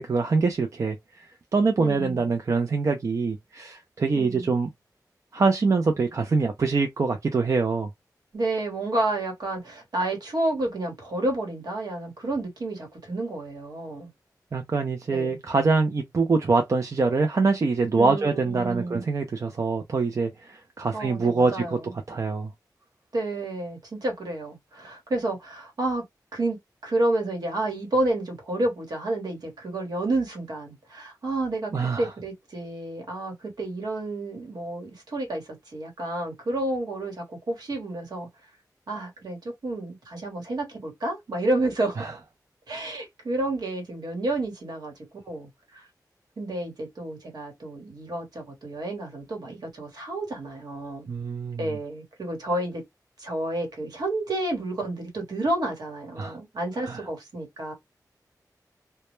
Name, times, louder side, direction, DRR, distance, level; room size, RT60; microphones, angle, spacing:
voice 1, 0.0-4.7 5.3-7.9 14.5-21.8 22.1-22.5 31.7-32.1 42.0-42.1 51.1-51.8 56.2-56.4 56.8-57.0, right 4 dB, 50° right, 0.4 m, -24 dB
voice 2, 1.8-2.2 4.1-4.5 8.3-14.1 15.1-15.4 18.0-19.0 20.9-21.9 23.1-26.0 26.3-26.6 26.8-38.3 38.9-42.0 42.7-44.9 45.2-45.9 46.4-51.1 51.6-52.8 53.2-57.7, right 2 dB, 75° right, 1.1 m, -30 dB
2.1 x 2.0 x 3.0 m
wide cardioid pair, 90°, 7 cm